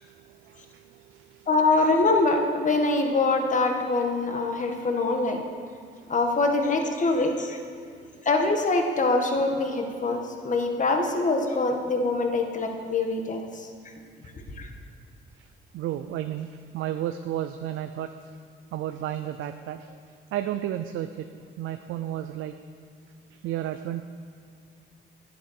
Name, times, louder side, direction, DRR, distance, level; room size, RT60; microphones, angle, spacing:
voice 1, 0.0-1.5 5.9-6.1 15.4-15.5 15.7-18.1 18.7-20.0 20.3-21.3 21.6-22.5 23.4-24.0, right 12 dB, 85° right, 8 dB, 0.5 m, -33 dB
voice 2, 1.5-5.4 6.1-7.6 8.2-13.7 14.3-14.7, left 3 dB, 40° left, 3 dB, 1.7 m, -24 dB
10.5 x 9.4 x 6.5 m, 2.3 s
cardioid pair, 90°, 20 cm